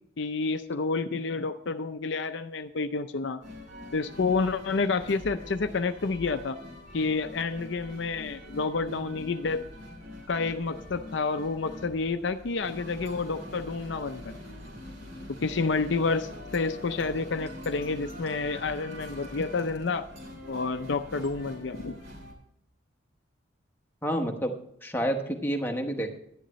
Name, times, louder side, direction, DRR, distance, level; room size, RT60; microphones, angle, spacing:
voice 1, 0.2-3.4 3.9-6.6 6.9-9.6 10.3-14.3 15.4-20.1 20.5-22.0, left 4 dB, 60° left, 9 dB, 0.6 m, -29 dB
sound 1, 3.4-22.3, left 1 dB, 75° right, 3.1 m, -44 dB
voice 2, 24.0-24.5 24.8-26.2, equal, 10° left, 3 dB, 1.1 m, -29 dB
11.0 x 10.0 x 3.1 m, 0.74 s
head